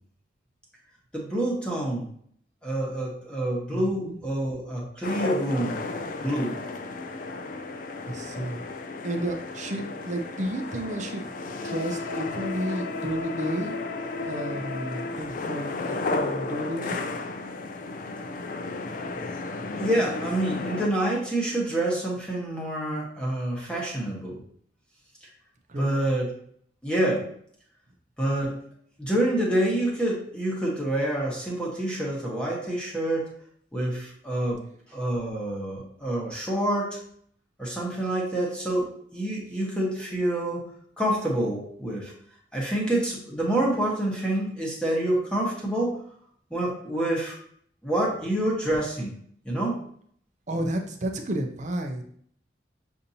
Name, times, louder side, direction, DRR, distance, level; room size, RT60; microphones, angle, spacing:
voice 1, 1.1-2.0 2.6-6.6 19.3-19.4 19.8-24.4 25.8-26.3 26.8-27.3 28.2-28.6 29.0-33.3 33.7-34.6 34.9-37.0 37.6-40.6 41.0-42.1 42.5-46.0 46.5-47.4 47.8-49.1 49.4-49.8, right 1 dB, 5° left, -4 dB, 1.1 m, -27 dB
voice 2, 3.7-4.2 8.1-8.6 9.0-11.3 11.6-13.8 14.2-17.0 25.7-25.9 50.5-52.0, right 1 dB, 40° right, 4 dB, 0.6 m, -32 dB
sound 1, 5.0-20.9, left 3 dB, 45° left, 0.3 m, -33 dB
6.7 x 2.7 x 2.7 m, 0.62 s
head